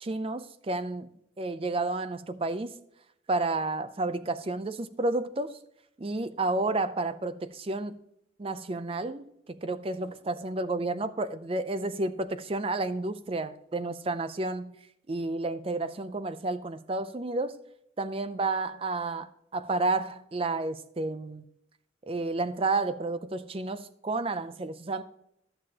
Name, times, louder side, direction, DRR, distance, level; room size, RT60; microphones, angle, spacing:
voice 1, 0.0-2.7 3.3-5.6 6.0-8.0 8.4-14.8 15.1-17.6 18.0-21.4 22.0-25.0, right 2 dB, 30° right, 12 dB, 0.5 m, -31 dB
13.5 x 6.7 x 2.9 m, 0.76 s
head